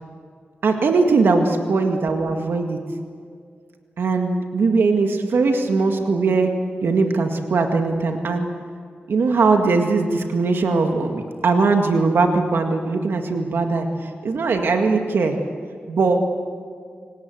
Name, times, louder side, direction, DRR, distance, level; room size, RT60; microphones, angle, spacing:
voice 1, 0.6-2.8 4.0-6.5 6.8-8.5 9.1-15.4 15.9-16.2, right 4 dB, 80° right, 4 dB, 1.9 m, -20 dB
26.5 x 18.5 x 7.9 m, 2.1 s
wide cardioid pair, 125°, 4 cm